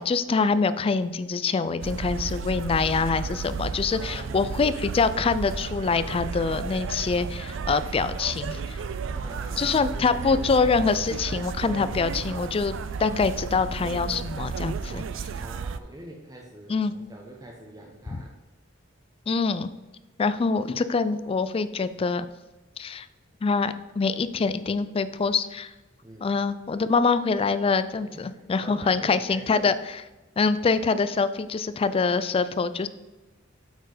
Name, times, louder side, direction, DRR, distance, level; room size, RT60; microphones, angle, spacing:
voice 1, 0.0-8.8 9.6-12.7 13.0-15.3 16.7-16.9 18.1-18.2 19.3-19.7 20.2-22.3 22.8-23.1 23.4-25.7 26.2-29.7 30.4-32.9, left 4 dB, 30° left, 13 dB, 0.3 m, -25 dB
sound 1, 1.8-15.8, right 5 dB, 65° right, 0.4 m, -33 dB
voice 2, 4.0-4.8 9.1-10.2 15.3-18.3 26.0-26.3 28.0-29.7, right 1 dB, 20° right, -1 dB, 0.8 m, -45 dB
8.0 x 4.4 x 4.9 m, 1.1 s
head